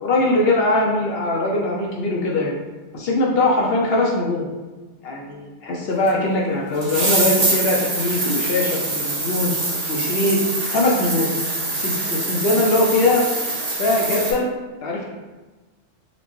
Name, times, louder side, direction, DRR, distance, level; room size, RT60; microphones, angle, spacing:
voice 1, 0.0-2.5 2.9-4.5 5.0-9.5 9.9-11.3 11.7-13.3 13.8-14.5 14.8-15.1, left 2 dB, 65° left, -2 dB, 0.7 m, -21 dB
sound 1, 6.1-6.2 6.8-14.3, right 2 dB, 45° right, 0.5 m, -24 dB
4.1 x 2.1 x 3.0 m, 1.2 s
omnidirectional pair, 1.2 m